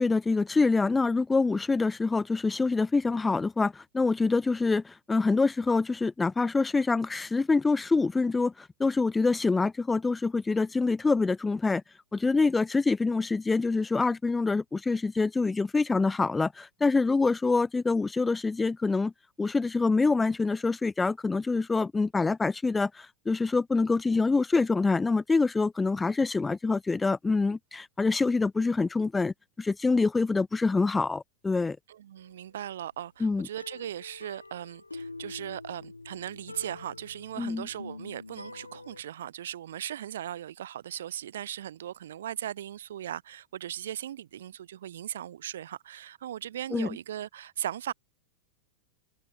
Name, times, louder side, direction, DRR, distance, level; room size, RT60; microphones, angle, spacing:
voice 1, 0.0-11.8 12.1-19.1 19.4-31.8 33.2-33.5 37.4-37.7 46.7-46.9, left 3 dB, 10° left, 0.9 m, -26 dB
voice 2, 31.9-47.9, right 11 dB, 60° right, 1.1 m, -38 dB
sound 1, 32.2-32.5 33.6-39.0, left 3 dB, 80° left, 2.2 m, -45 dB
open air
figure-of-eight pair, 90°, 0 cm